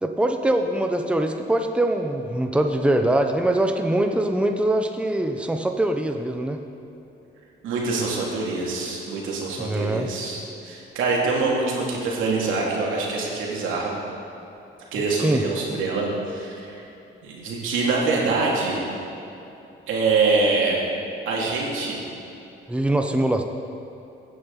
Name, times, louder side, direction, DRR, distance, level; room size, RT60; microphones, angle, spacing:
voice 1, 0.0-6.6 9.6-10.1 15.2-15.4 22.7-23.4, right 1 dB, 5° right, 5 dB, 0.8 m, -23 dB
voice 2, 7.6-13.9 14.9-16.9 17.2-18.8 19.9-20.8 21.3-22.0, right 3 dB, 85° right, -3 dB, 2.6 m, -24 dB
16.0 x 9.2 x 4.1 m, 2.9 s
cardioid pair, 90°, 20 cm